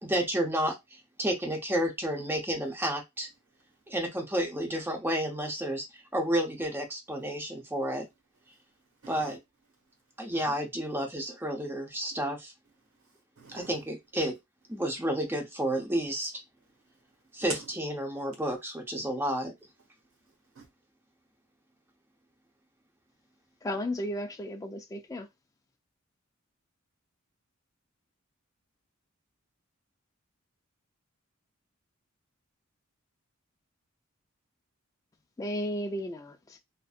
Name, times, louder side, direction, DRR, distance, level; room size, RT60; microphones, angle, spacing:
voice 1, 0.0-3.3 3.9-5.9 6.1-8.1 9.1-9.4 10.2-12.5 13.5-14.4 14.7-16.3 17.3-19.5, right 1 dB, 10° right, 0.7 m, -31 dB
voice 2, 9.0-9.4 10.3-10.5 12.9-13.8 17.4-17.7 20.3-20.7, right 3 dB, 85° right, 1.3 m, -43 dB
voice 3, 23.6-25.3 35.4-36.6, left 1 dB, 15° left, 0.3 m, -34 dB
2.6 x 2.5 x 2.4 m
head